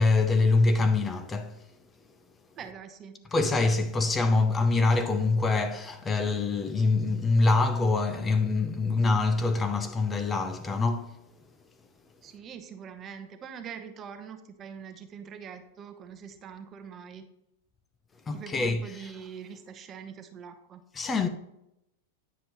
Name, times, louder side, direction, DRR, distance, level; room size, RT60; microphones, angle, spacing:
voice 1, 0.0-1.6 3.3-11.2 18.3-19.1 20.9-21.3, left 3 dB, 20° left, 0.6 m, -25 dB
voice 2, 2.6-3.3 12.2-17.2 18.3-20.8, right 7 dB, 30° right, 0.9 m, -43 dB
9.6 x 5.3 x 3.0 m
hypercardioid pair, 120°, 0 cm